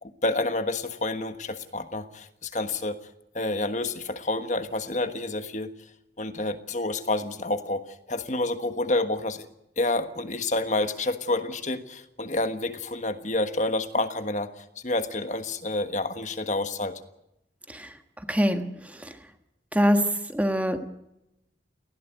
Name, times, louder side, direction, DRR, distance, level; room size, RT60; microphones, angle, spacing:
voice 1, 0.0-3.0 3.3-5.7 6.2-9.5 9.8-17.0, left 2 dB, 40° left, 9 dB, 1.4 m, -29 dB
voice 2, 18.3-18.6 19.7-20.8, equal, 10° right, 7 dB, 1.5 m, -23 dB
19.0 x 16.5 x 9.3 m, 0.87 s
head